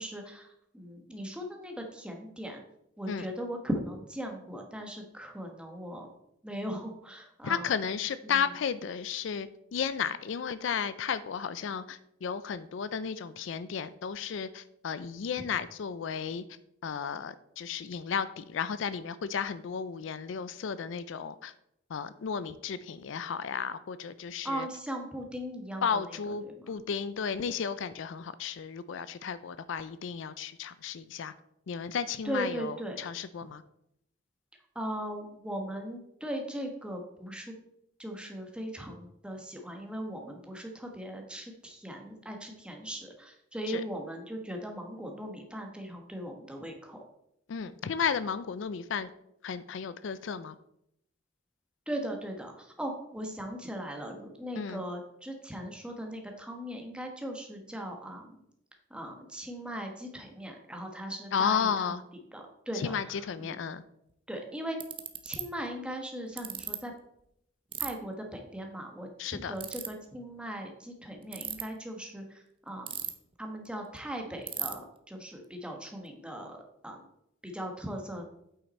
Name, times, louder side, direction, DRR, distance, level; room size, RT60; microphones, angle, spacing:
voice 1, 0.0-2.6 3.0-6.1 6.4-7.7 8.2-8.4 24.4-26.8 32.2-33.1 34.7-37.5 38.0-47.0 51.9-58.4 58.9-62.0 62.3-63.6 64.3-64.8 65.2-66.9 67.8-73.0 73.4-76.6 76.8-77.0 77.4-78.2, equal, 5° right, 2 dB, 1.2 m, -39 dB
voice 2, 7.4-16.4 16.8-21.5 21.9-24.7 25.8-31.3 31.7-33.6 43.7-43.8 47.5-49.1 49.4-50.6 54.6-54.8 61.3-62.0 62.7-63.8 69.2-69.5, left 6 dB, 65° left, 14 dB, 0.4 m, -33 dB
Ratchet pawl, 64.1-64.2 64.8-65.4 66.4-66.8 67.7-67.9 69.6-69.9 71.2-71.6 72.9-73.3 73.7-73.8 74.0-74.1 74.5-74.7, right 10 dB, 25° right, 0.6 m, -35 dB
8.6 x 5.7 x 4.2 m, 0.77 s
head